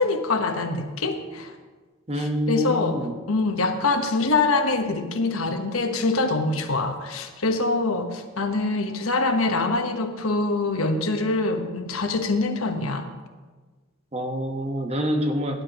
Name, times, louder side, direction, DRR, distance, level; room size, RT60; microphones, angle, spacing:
voice 1, 0.0-1.5 2.1-3.0 3.3-13.1, left 3 dB, 85° left, 6 dB, 1.2 m, -24 dB
voice 2, 2.1-3.1 14.1-15.6, equal, 30° right, 4 dB, 1.2 m, -26 dB
17.5 x 10.5 x 3.0 m, 1.4 s
head